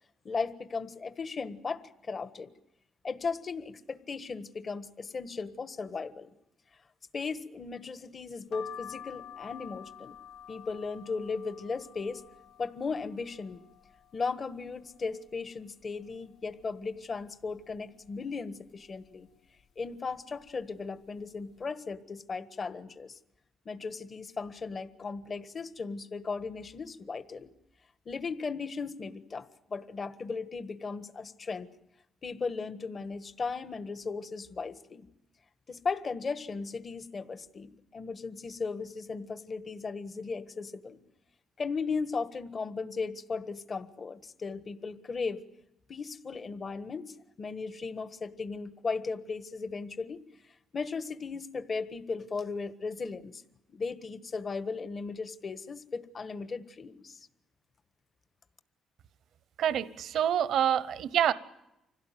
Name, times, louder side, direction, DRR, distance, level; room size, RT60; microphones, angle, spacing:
voice 1, 0.2-2.5 3.0-6.3 7.1-10.1 10.5-12.2 12.6-13.6 14.1-19.3 19.8-23.2 23.6-27.5 28.0-31.7 32.2-35.1 35.7-41.0 41.6-45.4 45.9-50.2 50.7-53.4 53.7-57.2, left 4 dB, 40° left, 12 dB, 1.4 m, -36 dB
sound 1, 8.5-14.2 14.6-15.4 15.8-15.9 16.1-17.2 17.7-18.1 18.8-19.2 19.9-20.2 20.4-20.6, left 9 dB, 75° left, 1.5 m, -49 dB
voice 2, 59.6-61.3, right 9 dB, 75° right, 15 dB, 1.0 m, -27 dB
25.5 x 17.0 x 9.2 m, 0.89 s
cardioid pair, 90°, 0 cm